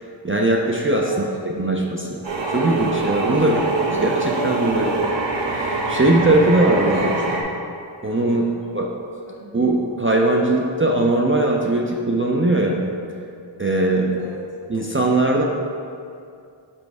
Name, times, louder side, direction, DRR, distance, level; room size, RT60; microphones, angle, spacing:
voice 1, 0.2-1.1 1.5-2.2 2.5-3.6 4.0-4.9 5.5-7.1 8.0-8.5 8.7-8.9 9.5-12.8 13.6-14.1 14.7-15.4, right 2 dB, 25° right, -1 dB, 0.5 m, -20 dB
voice 2, 1.1-1.8 3.4-4.0 4.7-4.9 6.9-7.5 8.4-8.6 9.2-9.5 14.2-14.4, left 2 dB, 40° left, -3 dB, 1.2 m, -38 dB
sound 1, 2.2-7.4, right 3 dB, 65° right, 1.0 m, -24 dB
5.2 x 4.4 x 4.7 m, 2.4 s
wide cardioid pair, 50°, 49 cm